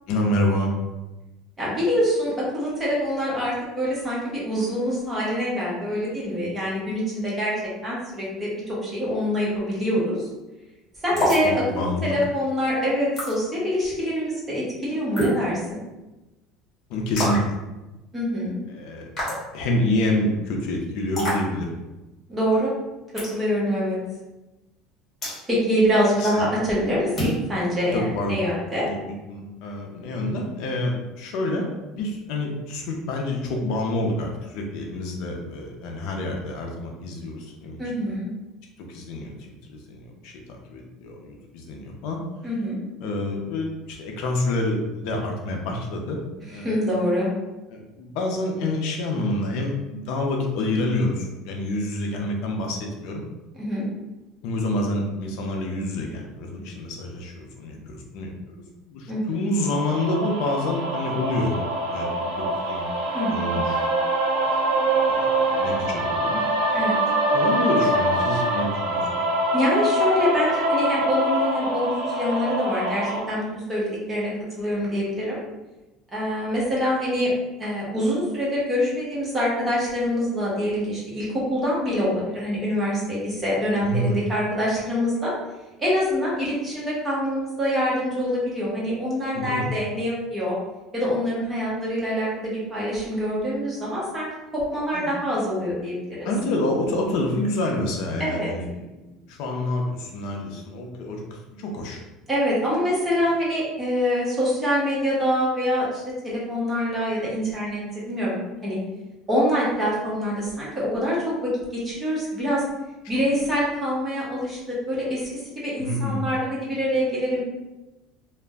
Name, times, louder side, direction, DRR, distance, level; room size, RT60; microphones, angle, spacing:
voice 1, 0.1-0.7 11.1-12.1 16.9-17.6 18.7-19.1 19.5-21.7 26.2-26.5 27.9-28.4 28.8-37.8 38.8-39.3 39.7-40.3 40.7-42.2 43.0-46.2 46.5-46.8 47.7-53.2 54.4-58.3 58.9-61.6 61.9-62.9 63.3-63.9 64.5-64.6 65.1-66.4 67.3-69.2 83.8-84.2 89.3-89.7 94.9-95.1 96.2-98.7 99.3-102.0 115.8-116.2, left 1 dB, 60° left, 1 dB, 0.5 m, -27 dB
voice 2, 1.6-7.5 7.8-10.3 11.0-15.8 18.1-18.5 22.3-22.7 23.3-24.0 25.5-28.9 37.8-38.3 42.4-42.8 46.6-47.3 53.6-53.8 59.1-59.4 63.1-63.4 66.7-67.0 69.5-73.4 73.7-74.3 74.6-75.4 76.1-77.3 77.6-85.3 85.8-90.5 90.9-94.3 94.5-96.3 98.2-98.5 102.3-108.4 108.6-108.8 109.3-111.2 111.4-112.6 113.1-115.3 115.6-117.4, equal, 15° right, -6 dB, 0.8 m, -25 dB
sound 1, 11.2-11.5 13.2-13.3 15.2-15.4 17.2-17.5 19.2-19.4 21.2-21.4 23.2-23.4 25.2-25.4 27.2-27.4, equal, 20° left, 1.1 m, -25 dB
sound 2, 59.6-73.2, right 1 dB, 90° right, 0.5 m, -24 dB
2.4 x 2.1 x 3.4 m, 1.0 s
cardioid pair, 165°, 0 cm